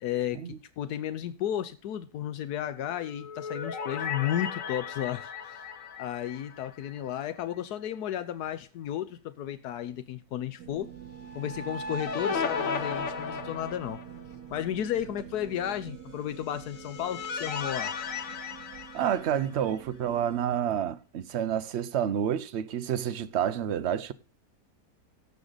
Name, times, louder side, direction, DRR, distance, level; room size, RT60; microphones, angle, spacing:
voice 1, 0.0-5.6 6.0-10.9 11.3-14.0 14.5-17.9, left 11 dB, 90° left, 1.3 m, -33 dB
sound 1, 3.0-7.3 7.6-7.7 11.2-14.3 16.4-19.8, left 5 dB, 60° left, 1.4 m, -36 dB
sound 2, 10.6-20.6, right 10 dB, 85° right, 1.4 m, -47 dB
voice 2, 18.9-24.1, right 9 dB, 55° right, 0.8 m, -29 dB
17.0 x 6.5 x 3.9 m
omnidirectional pair, 1.6 m